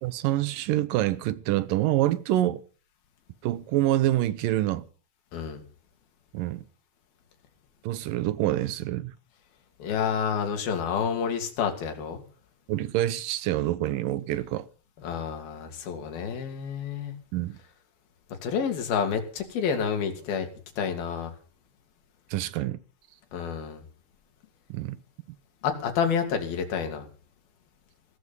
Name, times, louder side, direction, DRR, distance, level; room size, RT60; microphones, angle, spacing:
voice 1, 0.0-2.6 3.4-4.8 6.3-6.6 7.8-9.1 12.7-14.7 17.3-17.6 22.3-22.8 24.7-25.0, right 14 dB, 70° right, 2.2 m, -26 dB
voice 2, 9.8-12.2 15.0-17.1 18.4-20.5 20.8-21.3 23.3-23.8 25.6-27.1, left 7 dB, 65° left, 4.6 m, -29 dB
17.5 x 14.5 x 5.5 m
omnidirectional pair, 4.8 m